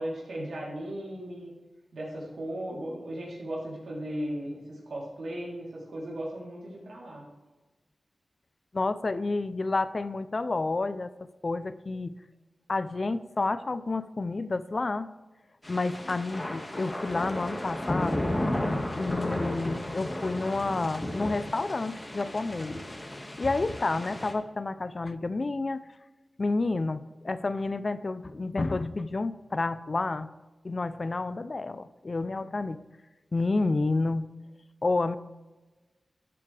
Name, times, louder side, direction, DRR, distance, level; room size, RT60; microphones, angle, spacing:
voice 1, 0.0-1.5 1.9-7.2, right 1 dB, 85° right, -4 dB, 3.4 m, -36 dB
voice 2, 8.7-11.1 11.4-12.2 12.7-15.1 15.7-18.3 19.0-22.8 23.4-25.8 26.4-30.3 30.6-32.9 33.3-34.3 34.8-35.2, left 3 dB, 50° left, 14 dB, 0.6 m, -30 dB
sound 1, 15.6-24.3, left 1 dB, 25° left, 1.8 m, -33 dB
13.0 x 8.6 x 3.4 m, 1.2 s
cardioid pair, 40°, 0 cm